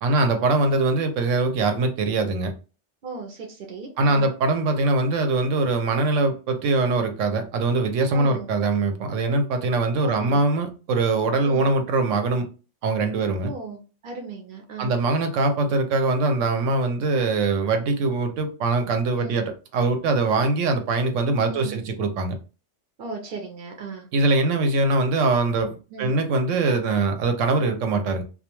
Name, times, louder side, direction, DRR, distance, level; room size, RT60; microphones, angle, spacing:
voice 1, 0.0-2.5 4.0-12.5 12.8-13.5 14.8-22.3 24.1-28.2, right 3 dB, 90° right, 6 dB, 1.0 m, -22 dB
voice 2, 3.0-4.3 8.1-8.5 10.0-10.4 11.4-11.6 13.4-15.0 19.1-19.4 21.4-21.8 23.0-24.1 25.9-26.1, right 4 dB, 60° right, 2 dB, 0.6 m, -36 dB
2.3 x 2.2 x 2.9 m, 0.34 s
omnidirectional pair, 1.3 m